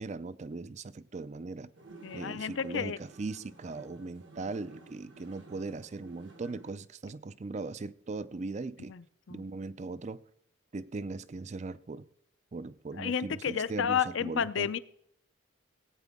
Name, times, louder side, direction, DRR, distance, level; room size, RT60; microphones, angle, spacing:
voice 1, 0.0-1.7 2.1-8.9 9.3-10.2 10.7-12.1 12.5-14.7, right 3 dB, 35° right, 0.4 m, -39 dB
sound 1, 1.8-6.7, right 2 dB, 60° right, 1.2 m, -53 dB
voice 2, 2.0-3.0 8.9-9.0 9.3-9.4 13.0-14.8, left 7 dB, 70° left, 0.5 m, -31 dB
17.0 x 9.0 x 3.6 m
head